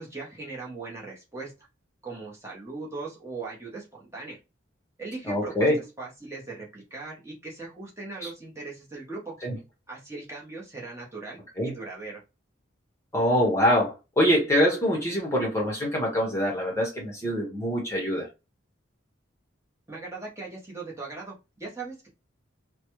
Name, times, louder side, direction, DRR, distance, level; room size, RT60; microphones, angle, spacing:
voice 1, 0.0-1.5 2.0-4.4 5.0-5.7 6.0-9.3 9.9-12.2 19.9-22.1, right 3 dB, 15° right, 1.0 m, -39 dB
voice 2, 5.2-5.8 8.2-8.3 9.4-9.6 11.6-11.7 13.1-18.3, equal, 15° left, 0.9 m, -24 dB
3.1 x 2.2 x 3.0 m
head